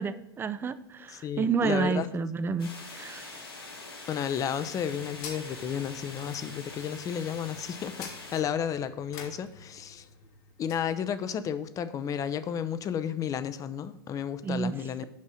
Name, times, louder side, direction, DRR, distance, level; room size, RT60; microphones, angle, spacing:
voice 1, 0.0-3.4 14.4-14.7, right 5 dB, 15° right, 13 dB, 0.5 m, -30 dB
voice 2, 1.1-2.1 4.1-10.1 10.6-15.0, left 8 dB, 30° left, 13 dB, 0.6 m, -32 dB
sound 1, 2.6-8.4, left 3 dB, 85° left, 2.4 m, -44 dB
sound 2, 4.6-10.9, left 5 dB, 50° left, 1.6 m, -48 dB
7.4 x 5.5 x 6.2 m, 0.87 s
hypercardioid pair, 100°, 12 cm